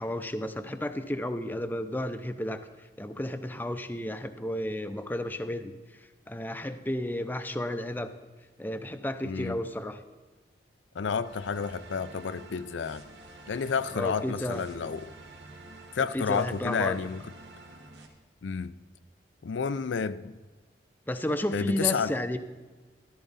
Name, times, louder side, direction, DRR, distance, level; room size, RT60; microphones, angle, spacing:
voice 1, 0.0-2.7 3.0-5.7 6.0-8.1 8.6-10.0 13.9-14.6 16.1-17.0 21.1-22.4, left 1 dB, 10° left, 0.5 m, -32 dB
voice 2, 9.2-9.6 10.9-13.0 13.5-15.1 15.9-17.2 18.4-18.7 19.4-20.4 21.5-22.2, left 6 dB, 85° left, 0.5 m, -30 dB
sound 1, 11.2-18.1, right 2 dB, 75° right, 1.7 m, -49 dB
14.0 x 13.0 x 4.0 m
head